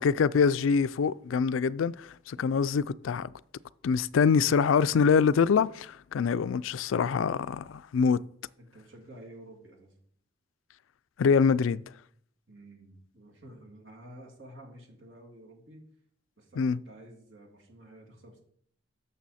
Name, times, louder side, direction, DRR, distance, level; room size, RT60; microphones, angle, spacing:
voice 1, 0.0-3.3 3.8-8.2 11.2-11.8 16.6-16.8, left 6 dB, 90° left, 0.4 m, -25 dB
voice 2, 2.4-2.7 8.6-9.9 12.5-15.8 16.4-18.4, right 1 dB, 75° right, 2.7 m, -51 dB
12.5 x 6.9 x 4.2 m
head